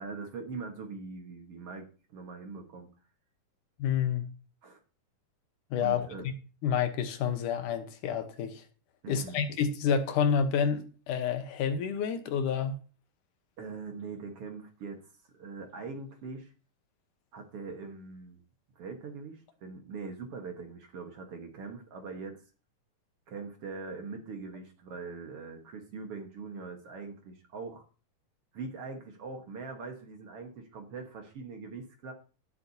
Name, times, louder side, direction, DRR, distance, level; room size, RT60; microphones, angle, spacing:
voice 1, 0.0-1.9 2.1-2.9 4.6-4.8 5.8-6.3 9.0-9.4 13.6-15.0 15.3-16.5 17.3-18.4 18.8-22.4 23.3-27.8 28.5-32.1, right 4 dB, 55° right, 2.1 m, -42 dB
voice 2, 3.8-4.2 5.7-6.1 6.6-8.6 9.1-12.7, left 7 dB, 80° left, 2.6 m, -29 dB
18.5 x 7.7 x 2.8 m
omnidirectional pair, 3.6 m